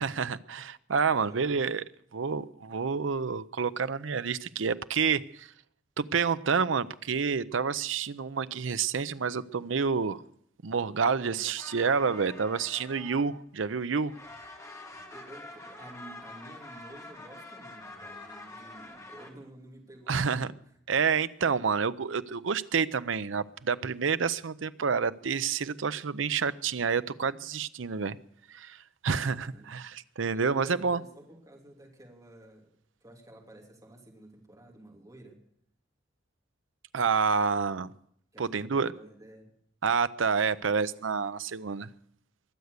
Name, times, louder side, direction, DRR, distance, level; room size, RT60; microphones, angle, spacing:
voice 1, 0.0-1.8 2.1-5.5 6.0-10.2 10.6-14.1 20.1-20.5 20.9-28.2 28.5-28.8 29.0-31.0 36.9-37.9 38.4-38.9 39.8-41.9, right 5 dB, 80° right, 0.6 m, -28 dB
voice 2, 1.1-1.6 11.1-11.4 15.1-20.8 29.1-29.7 30.3-32.7 33.0-35.4 38.3-39.5, right 1 dB, 20° right, 3.0 m, -51 dB
sound 1, 11.6-13.7 13.9-19.3, left 2 dB, 15° left, 2.2 m, -46 dB
22.5 x 8.2 x 6.6 m
head